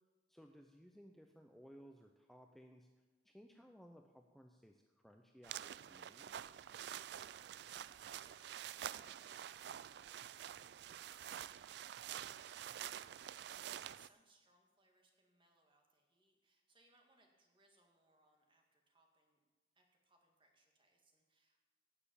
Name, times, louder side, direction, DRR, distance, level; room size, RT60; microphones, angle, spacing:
voice 1, 0.3-2.9 3.2-6.3, equal, ahead, 3 dB, 0.6 m, -60 dB
sound 1, 5.4-14.1, right 10 dB, 60° right, 0.3 m, -48 dB
voice 2, 6.7-19.4 19.7-21.6, right 2 dB, 30° right, 2 dB, 2.1 m, -74 dB
17.0 x 6.9 x 7.0 m, 1.3 s
head